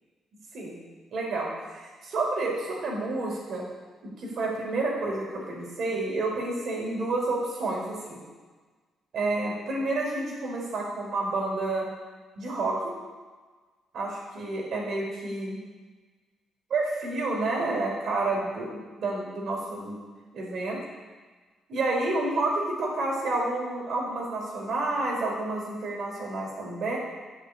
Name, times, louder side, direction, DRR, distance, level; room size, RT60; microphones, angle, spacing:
voice 1, 1.1-3.7 4.0-8.2 9.1-11.9 12.4-12.9 13.9-15.6 16.7-20.0 20.3-20.8 21.7-27.0, right 2 dB, 60° right, -2 dB, 5.1 m, -29 dB
11.0 x 7.3 x 8.7 m, 1.4 s
cardioid pair, 90°, 0 cm